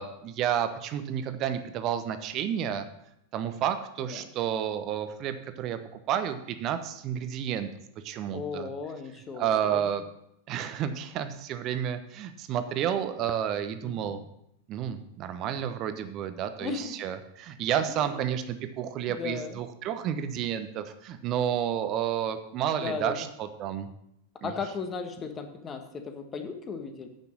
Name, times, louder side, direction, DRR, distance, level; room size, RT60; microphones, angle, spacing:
voice 1, 0.0-2.9 3.3-7.7 8.0-8.7 9.4-10.0 10.5-14.2 14.7-23.9 24.4-24.5, right 9 dB, 35° right, 9 dB, 1.0 m, -31 dB
voice 2, 4.0-4.3 8.3-9.9 13.8-14.2 16.6-17.1 17.9-18.0 19.1-19.6 22.7-23.1 24.4-27.1, left 5 dB, 25° left, 6 dB, 1.4 m, -36 dB
9.1 x 5.9 x 7.4 m, 0.79 s
figure-of-eight pair, 90°, 0 cm